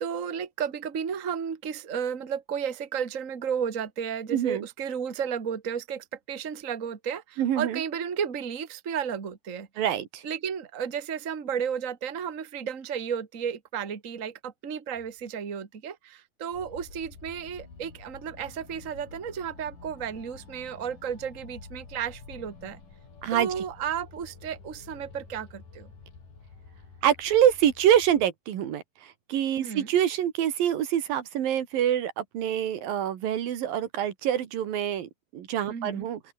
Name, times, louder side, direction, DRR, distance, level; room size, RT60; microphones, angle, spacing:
voice 1, 0.0-9.7 10.2-22.8 23.3-25.9 29.6-29.9 35.7-36.1, right 7 dB, 30° right, 1.8 m, -33 dB
voice 2, 4.3-4.7 7.4-7.8 9.8-10.2 23.2-23.5 27.0-36.2, right 10 dB, 80° right, 3.7 m, -26 dB
sound 1, 16.5-28.3, left 4 dB, 65° left, 7.4 m, -49 dB
open air
omnidirectional pair, 4.0 m